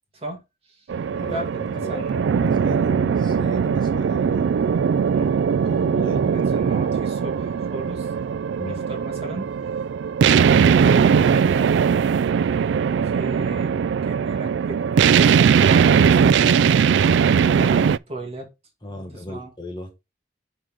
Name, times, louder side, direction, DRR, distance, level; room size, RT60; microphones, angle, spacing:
sound 1, 0.9-18.0, right 7 dB, 75° right, 0.3 m, -19 dB
voice 1, 1.2-2.3 5.1-5.5 6.1-8.1 8.6-9.5 10.2-11.9 12.8-17.1 17.5-18.5 18.9-19.5, right 2 dB, 30° right, 2.2 m, -35 dB
voice 2, 1.7-4.7 5.6-6.3 6.6-6.7 8.6-8.8 18.8-19.9, left 1 dB, 25° left, 1.4 m, -35 dB
6.1 x 6.0 x 3.6 m
head